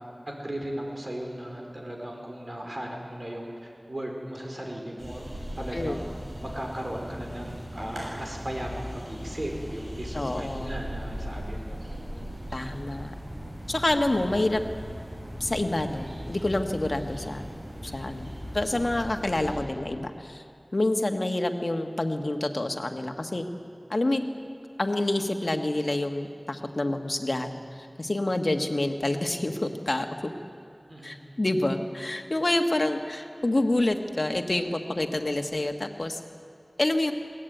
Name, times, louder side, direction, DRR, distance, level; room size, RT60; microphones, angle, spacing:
voice 1, 0.3-5.2 5.6-6.1 6.4-12.3 17.8-18.1 30.9-31.1, right 1 dB, 55° right, 1 dB, 4.7 m, -37 dB
sound 1, 5.0-19.5, equal, 70° right, 7.5 m, -38 dB
voice 2, 10.1-10.8 12.5-13.1 13.7-14.6 15.4-17.4 17.8-20.4 20.7-23.4 23.9-24.2 24.8-30.3 31.0-36.2 36.8-37.1, left 1 dB, 65° left, 5 dB, 1.6 m, -27 dB
22.0 x 17.0 x 9.3 m, 2.6 s
wide cardioid pair, 45°, 0 cm